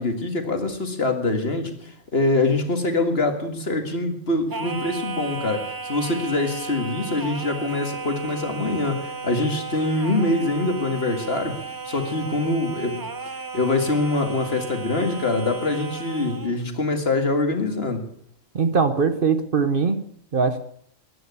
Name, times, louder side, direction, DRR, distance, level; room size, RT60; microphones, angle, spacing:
voice 1, 0.0-13.0 13.5-18.1, left 2 dB, 50° left, 6 dB, 2.1 m, -24 dB
Singing, 4.5-16.6, right 4 dB, 25° right, 0.5 m, -34 dB
voice 2, 18.5-20.0 20.3-20.6, right 5 dB, 45° right, 10 dB, 1.1 m, -21 dB
14.0 x 10.5 x 8.2 m, 0.67 s
omnidirectional pair, 1.4 m